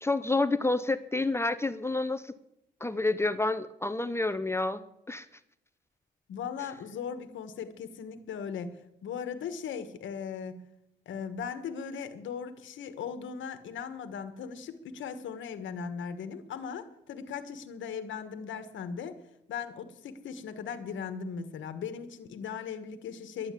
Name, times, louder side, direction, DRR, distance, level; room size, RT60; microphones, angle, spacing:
voice 1, 0.0-2.3 2.8-4.8 5.1-5.3, left 2 dB, 15° left, 12 dB, 0.7 m, -29 dB
voice 2, 6.3-8.8 9.0-10.6 11.0-19.2 19.5-23.5, left 6 dB, 75° left, 9 dB, 1.4 m, -38 dB
11.5 x 9.6 x 8.3 m, 0.79 s
cardioid pair, 90°, 20 cm